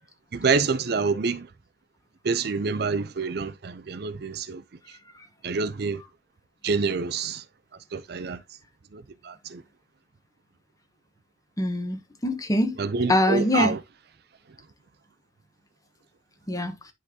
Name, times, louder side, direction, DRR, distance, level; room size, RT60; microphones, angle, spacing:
voice 1, 0.3-1.5 2.2-4.6 5.4-6.0 6.6-7.4 7.9-8.4 8.9-9.6 12.8-13.8, right 4 dB, 55° right, 0.5 m, -27 dB
voice 2, 11.6-12.8 13.1-13.8 16.5-16.7, left 1 dB, 20° left, 1.0 m, -24 dB
10.5 x 3.9 x 2.7 m
head